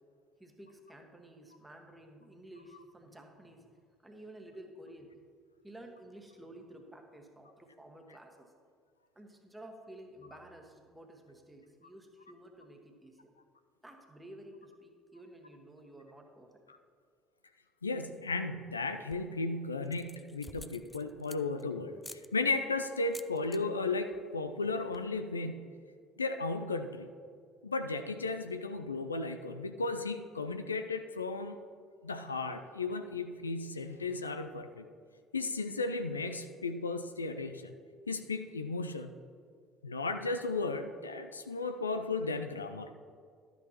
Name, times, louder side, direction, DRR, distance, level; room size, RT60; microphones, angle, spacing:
voice 1, 0.4-3.7 4.0-5.2 5.6-8.5 9.1-13.3 13.8-16.6, right 1 dB, 10° right, 3 dB, 1.4 m, -52 dB
voice 2, 17.8-25.7 26.2-27.1 27.6-31.6 32.0-34.9 35.3-37.7 38.1-39.1 39.8-42.9, left 3 dB, 85° left, 8 dB, 0.4 m, -35 dB
sound 1, 18.9-19.4 19.8-21.6 22.0-22.3 23.0-23.6 23.9-24.2 24.5-24.6 24.8-25.2, left 2 dB, 10° left, 0.4 m, -50 dB
12.5 x 8.8 x 2.9 m, 2.1 s
figure-of-eight pair, 55°, 0 cm